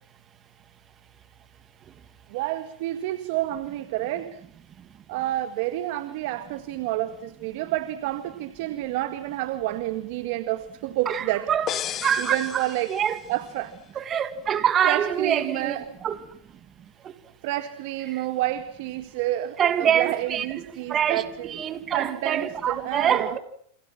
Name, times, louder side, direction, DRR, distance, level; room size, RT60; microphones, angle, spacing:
voice 1, 2.3-4.4 5.1-11.5 11.8-12.9 13.3-14.0 14.8-15.9 17.4-23.4, right 15 dB, 60° right, 1.9 m, -29 dB
voice 2, 11.1-11.7 12.0-13.2 14.0-16.2 19.6-20.5 20.9-21.2 21.5-23.4, right 9 dB, 30° right, 2.4 m, -25 dB
sound 1, 11.7-13.5, left 11 dB, 35° left, 1.2 m, -34 dB
29.5 x 27.0 x 6.1 m
hypercardioid pair, 120°, 0 cm